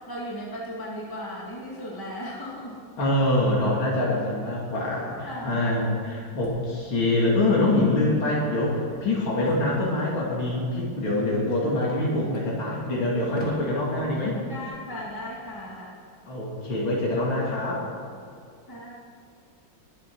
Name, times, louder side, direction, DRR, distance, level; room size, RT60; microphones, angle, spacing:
voice 1, 0.1-2.8 5.2-5.7 11.4-11.7 14.5-15.9 18.7-18.9, equal, 10° left, -5 dB, 2.2 m, -36 dB
voice 2, 3.0-14.4 16.3-17.8, left 1 dB, 90° left, -5 dB, 3.4 m, -25 dB
sound 1, 6.4-6.5 7.2-10.1 10.6-15.6, left 2 dB, 40° left, 3.4 m, -45 dB
20.5 x 7.6 x 6.3 m, 2.4 s
omnidirectional pair, 2.1 m